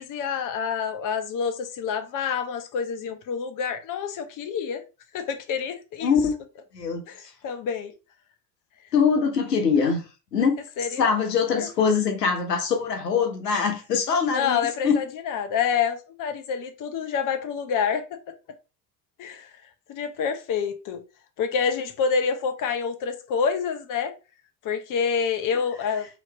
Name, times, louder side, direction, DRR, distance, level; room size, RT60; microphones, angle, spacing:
voice 1, 0.0-4.8 5.1-6.1 7.1-7.9 10.4-10.5 10.8-11.1 11.6-11.7 14.3-18.2 19.2-19.5 19.9-21.0 21.4-24.1 24.6-26.1, left 6 dB, 40° left, 0.9 m, -27 dB
voice 2, 6.0-6.3 6.7-7.0 8.9-10.1 10.3-10.6 11.0-15.0, left 6 dB, 85° left, 0.7 m, -23 dB
4.4 x 2.9 x 2.9 m
figure-of-eight pair, 60°, 47 cm